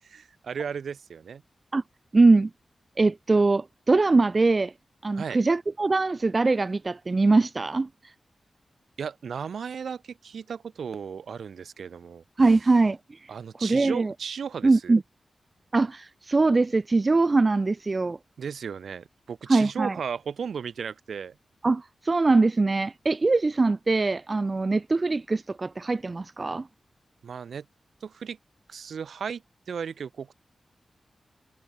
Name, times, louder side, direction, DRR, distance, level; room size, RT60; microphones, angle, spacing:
voice 1, 0.1-1.4 5.2-5.4 9.0-12.2 13.3-15.0 18.4-21.4 27.2-27.7 28.0-28.4 28.7-30.3, right 6 dB, 90° right, 6.9 m, -35 dB
voice 2, 2.1-2.5 3.0-4.7 5.0-7.9 12.4-13.2 13.6-14.1 14.6-15.0 15.7-18.2 19.5-20.0 21.6-26.7, right 3 dB, 35° right, 0.6 m, -22 dB
wide cardioid pair, 110°, 0 cm